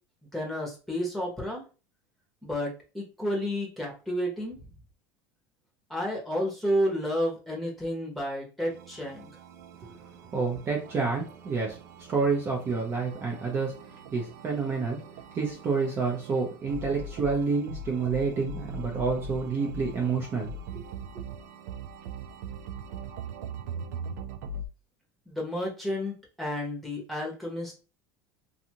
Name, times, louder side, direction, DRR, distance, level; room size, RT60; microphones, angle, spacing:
voice 1, 0.3-1.6 2.4-4.6 5.9-9.3 25.3-27.7, equal, ahead, -2 dB, 0.9 m, -31 dB
sound 1, 8.7-24.7, right 3 dB, 85° right, 0.4 m, -41 dB
voice 2, 9.8-15.0 15.3-20.8, right 4 dB, 30° right, -1 dB, 0.6 m, -29 dB
2.6 x 2.4 x 2.8 m, 0.33 s
supercardioid pair, 145°, 8 cm